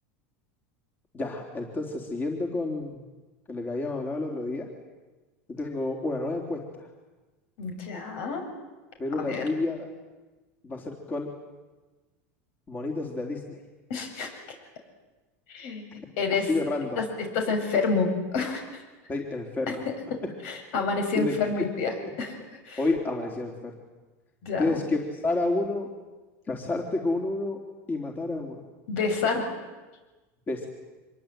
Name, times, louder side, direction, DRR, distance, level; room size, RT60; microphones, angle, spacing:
voice 1, 1.1-3.0 3.5-4.7 5.5-6.9 9.0-9.9 10.6-11.3 12.7-13.6 16.5-17.0 19.1-19.9 21.2-21.6 22.8-23.7 24.6-25.9 26.5-27.6 27.9-28.6 30.5-30.7, left 2 dB, 25° left, 1 dB, 3.8 m, -30 dB
voice 2, 7.6-8.4 9.2-9.4 13.9-14.3 15.5-15.9 16.2-16.5 17.0-18.6 19.8-22.3 22.6-22.8 24.4-24.8 28.9-29.5, left 4 dB, 65° left, 4 dB, 7.5 m, -28 dB
25.5 x 22.5 x 9.2 m, 1.2 s
supercardioid pair, 130°, 8 cm